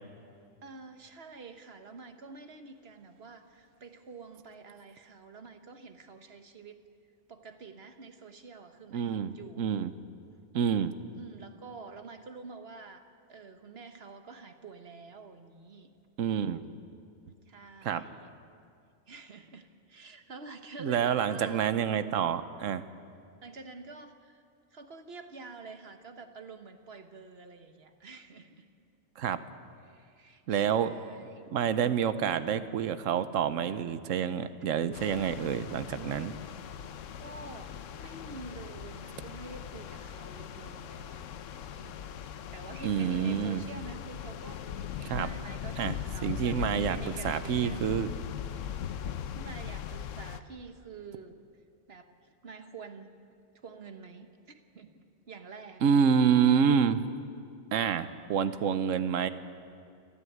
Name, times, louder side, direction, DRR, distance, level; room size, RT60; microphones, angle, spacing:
voice 1, 0.6-6.8 7.3-9.7 11.1-13.0 13.3-15.9 17.5-18.3 19.1-21.7 23.4-24.4 24.7-28.7 29.8-31.6 37.2-37.7 38.0-41.4 41.7-42.0 42.5-48.0 48.5-48.7 49.3-51.4 51.9-53.1 53.6-54.9 55.3-55.8, right 4 dB, 55° right, 7 dB, 1.5 m, -48 dB
voice 2, 8.9-9.9 10.5-10.9 16.2-16.6 17.8-18.0 20.8-22.8 29.2-29.4 30.5-30.9 31.5-36.3 42.8-43.6 45.0-45.3 45.8-45.9 46.2-47.0 47.2-48.1 55.8-57.0 57.7-59.3, right 7 dB, 80° right, 12 dB, 1.2 m, -27 dB
sound 1, 34.9-50.4, left 9 dB, 80° left, 1.1 m, -40 dB
29.0 x 11.5 x 9.3 m, 2.3 s
omnidirectional pair, 1.3 m